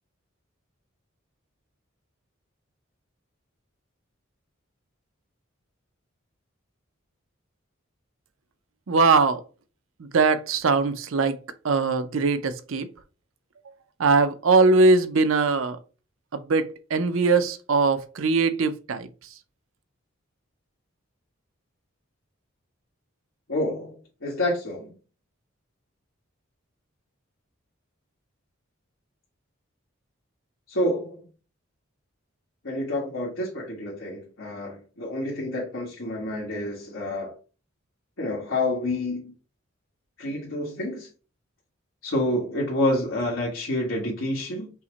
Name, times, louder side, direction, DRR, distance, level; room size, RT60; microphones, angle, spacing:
voice 1, 8.9-9.4 10.0-11.4 11.6-12.9 14.0-15.8 16.3-19.1, right 4 dB, 75° right, 0.5 m, -21 dB
voice 2, 23.5-24.9 30.7-31.2 32.6-37.3 38.2-39.3 40.2-41.1 42.0-44.7, left 1 dB, 75° left, 1.4 m, -28 dB
5.6 x 2.1 x 3.9 m
head